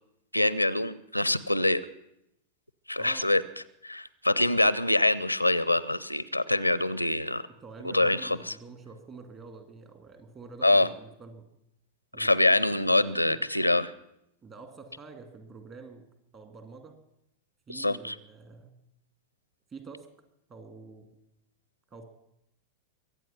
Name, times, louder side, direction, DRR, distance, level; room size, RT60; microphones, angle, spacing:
voice 1, 0.3-1.9 2.9-3.4 3.8-7.4 7.8-8.5 10.6-10.9 12.2-13.9 17.7-18.2, left 2 dB, 85° left, 19 dB, 0.5 m, -25 dB
voice 2, 3.0-3.3 7.5-11.5 12.1-12.4 13.1-13.4 14.4-16.0 16.3-17.0 17.7-18.8 19.7-20.1 20.5-21.1 21.9-22.0, right 4 dB, 30° right, 7 dB, 2.3 m, -47 dB
23.5 x 8.3 x 5.8 m, 0.81 s
figure-of-eight pair, 90°, 0 cm